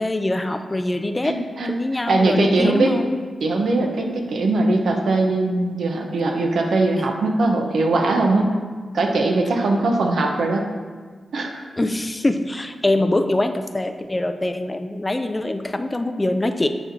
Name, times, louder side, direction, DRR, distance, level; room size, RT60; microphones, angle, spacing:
voice 1, 0.0-1.3 1.7-3.2 11.8-16.7, left 1 dB, 20° left, 7 dB, 0.3 m, -23 dB
voice 2, 1.2-1.7 2.1-3.0 3.4-8.5 8.9-10.7 11.3-11.6, right 2 dB, 75° right, 3 dB, 0.7 m, -20 dB
8.9 x 4.3 x 2.6 m, 1.5 s
wide cardioid pair, 90°, 0 cm